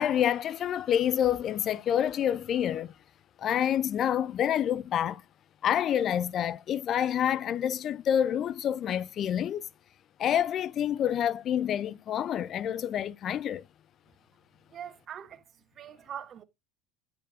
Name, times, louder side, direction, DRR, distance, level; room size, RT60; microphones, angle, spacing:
voice 1, 0.0-2.9 3.4-5.2 5.6-9.6 10.2-13.6, left 10 dB, 45° left, 0.4 m, -28 dB
voice 2, 14.7-15.4 15.7-16.4, right 9 dB, 40° right, 1.0 m, -42 dB
10.0 x 6.8 x 2.5 m
supercardioid pair, 110°, 0 cm